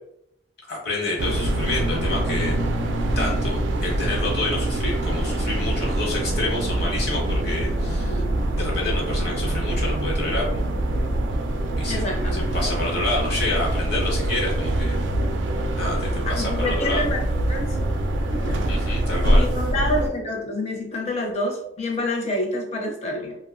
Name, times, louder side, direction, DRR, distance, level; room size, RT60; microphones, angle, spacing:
voice 1, 0.7-2.5 3.2-8.2 8.6-10.4 11.8-12.0 12.3-15.0 15.8-17.0 18.7-19.4, left 2 dB, 60° left, -3 dB, 1.0 m, -28 dB
sound 1, 1.2-20.1, right 1 dB, 80° right, 0.3 m, -24 dB
voice 2, 11.9-12.5 16.3-17.2 17.5-17.8 18.3-19.0 19.3-23.4, left 1 dB, 35° left, 0 dB, 0.6 m, -28 dB
2.6 x 2.1 x 2.5 m, 0.76 s
head